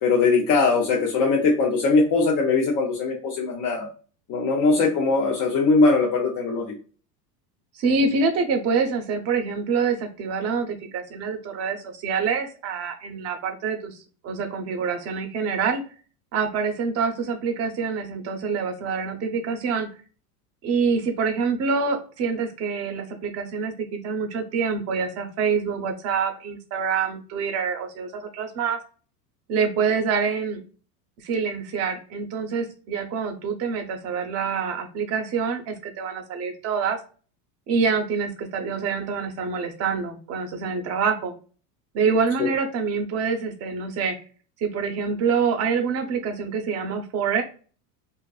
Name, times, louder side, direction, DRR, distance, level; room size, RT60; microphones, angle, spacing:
voice 1, 0.0-3.9 4.3-6.8 42.4-42.5, left 4 dB, 40° left, -2 dB, 0.6 m, -21 dB
voice 2, 7.8-14.0 14.2-15.8 16.3-19.9 20.6-28.8 29.5-30.6 31.2-37.0 37.7-41.3 41.9-44.1 44.6-47.4, right 5 dB, 30° right, 4 dB, 0.5 m, -26 dB
2.5 x 2.3 x 2.3 m, 0.38 s
supercardioid pair, 110°, 48 cm